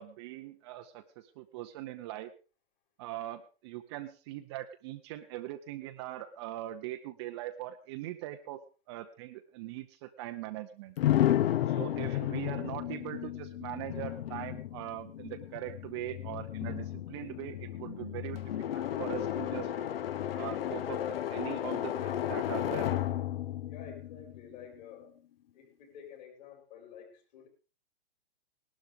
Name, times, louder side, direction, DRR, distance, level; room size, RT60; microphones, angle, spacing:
voice 1, 0.0-2.3 3.0-8.6 8.9-11.0 11.7-18.4 18.7-19.7 20.4-22.9, right 14 dB, 25° right, 6 dB, 0.7 m, -41 dB
sound 1, 11.0-24.8, left 12 dB, 60° left, 0.9 m, -33 dB
voice 2, 23.7-25.2 25.5-27.5, left 7 dB, 40° left, 3 dB, 5.8 m, -50 dB
19.0 x 12.0 x 3.6 m, 0.34 s
hypercardioid pair, 155°, 33 cm